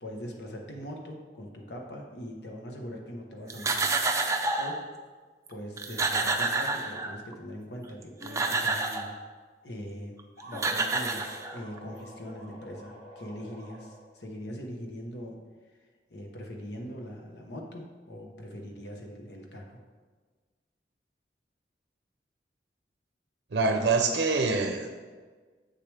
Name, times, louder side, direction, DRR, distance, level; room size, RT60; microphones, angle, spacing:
voice 1, 0.0-3.9 4.5-4.8 5.5-9.1 9.6-10.2 10.4-15.4 15.8-19.8, equal, 75° left, 1 dB, 1.1 m, -41 dB
sound 1, 3.5-4.8 5.5-5.6 5.8-7.3 8.0-9.1 10.2-10.3 10.5-11.8, right 3 dB, 15° right, 0.4 m, -28 dB
sound 2, 10.4-14.3, equal, 40° left, 1.7 m, -47 dB
voice 2, 23.5-24.9, right 3 dB, 80° right, 4 dB, 0.6 m, -25 dB
7.6 x 6.7 x 3.4 m, 1.4 s
head